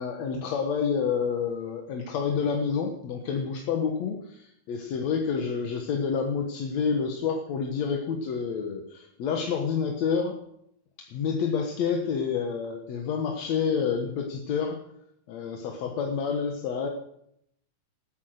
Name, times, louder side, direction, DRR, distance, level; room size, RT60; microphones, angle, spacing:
voice 1, 0.0-10.4 11.0-14.8 15.3-16.9, left 6 dB, 60° left, 2 dB, 2.3 m, -28 dB
18.0 x 10.5 x 6.5 m, 0.74 s
omnidirectional pair, 4.1 m